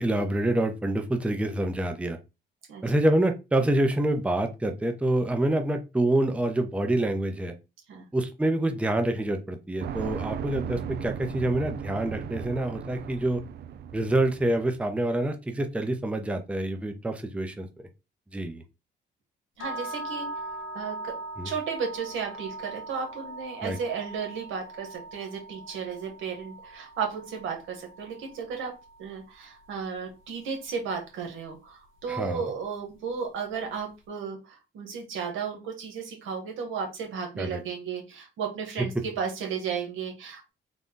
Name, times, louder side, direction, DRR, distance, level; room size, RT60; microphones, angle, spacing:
voice 1, 0.0-2.2 2.8-7.5 8.1-13.4 13.9-17.7 18.3-18.6 21.4-21.5 23.6-23.8 32.1-32.5 37.4-37.6, right 1 dB, 5° right, 6 dB, 0.5 m, -26 dB
sound 1, 9.8-14.8, right 8 dB, 55° right, 0.4 m, -37 dB
sound 2, 19.6-29.7, right 1 dB, 85° left, 0.9 m, -41 dB
voice 2, 19.6-20.3 20.7-21.1 21.4-28.7 29.0-40.5, right 6 dB, 85° right, 3 dB, 1.4 m, -34 dB
3.9 x 2.3 x 3.7 m, 0.27 s
cardioid pair, 90°, 20 cm